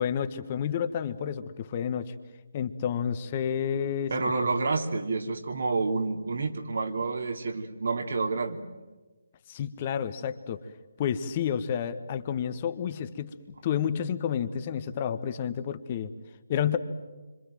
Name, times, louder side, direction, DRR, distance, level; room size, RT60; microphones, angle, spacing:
voice 1, 0.0-2.1 2.5-4.1 9.5-10.6 11.0-13.4 13.6-16.1 16.5-16.8, left 8 dB, 30° left, 11 dB, 1.4 m, -30 dB
voice 2, 4.1-8.6, right 3 dB, 60° right, 5 dB, 2.9 m, -29 dB
27.0 x 26.0 x 7.6 m, 1.3 s
figure-of-eight pair, 150°, 0 cm